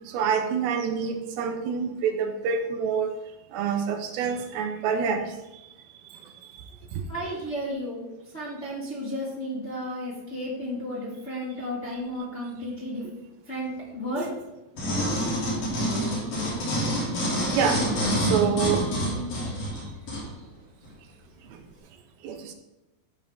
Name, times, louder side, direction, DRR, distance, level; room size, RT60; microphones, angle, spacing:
voice 1, 0.1-3.1 3.5-5.3 6.1-6.2 6.6-7.0 17.5-17.9 18.2-18.9 21.5-21.6 22.2-22.6, right 6 dB, 85° right, 5 dB, 2.8 m, -27 dB
voice 2, 7.1-8.1 8.3-13.0 13.5-14.3, equal, 25° left, -6 dB, 1.5 m, -33 dB
sound 1, 14.8-20.3 20.8-20.9, equal, 70° left, 4.7 m, -27 dB
13.5 x 5.4 x 3.5 m, 0.98 s
omnidirectional pair, 4.3 m